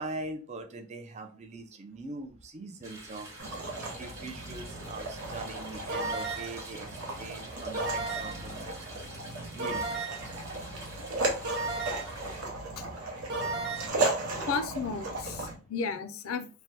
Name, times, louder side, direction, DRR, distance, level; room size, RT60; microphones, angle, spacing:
voice 1, 0.0-3.3 3.9-6.9 7.1-9.1 9.5-9.9 13.7-13.9 14.3-14.6, right 2 dB, 30° right, 5 dB, 0.4 m, -42 dB
sound 1, 2.8-12.4, right 2 dB, 15° right, 0.9 m, -47 dB
sound 2, 3.4-15.6, right 2 dB, 85° right, 0.8 m, -36 dB
sound 3, 5.9-6.6 7.7-8.5 9.6-10.3 11.4-12.2 13.3-13.9, right 3 dB, 50° right, 1.0 m, -34 dB
voice 2, 14.5-16.5, left 5 dB, 70° left, 10 dB, 0.4 m, -33 dB
3.3 x 2.1 x 2.7 m, 0.34 s
head